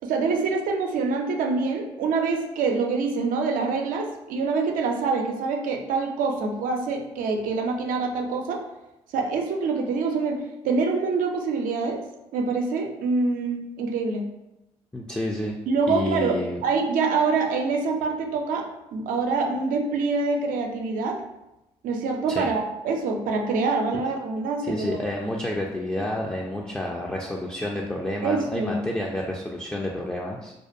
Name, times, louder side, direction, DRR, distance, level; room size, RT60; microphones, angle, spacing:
voice 1, 0.0-8.6 9.1-12.0 12.3-14.2 15.7-21.2 21.8-25.0 28.2-28.8, right 4 dB, 70° right, 3 dB, 0.4 m, -25 dB
voice 2, 14.9-15.6 15.9-16.6 22.3-22.5 24.6-30.5, left 1 dB, 5° left, -2 dB, 0.3 m, -29 dB
2.4 x 2.2 x 2.5 m, 0.94 s
hypercardioid pair, 55°, 14 cm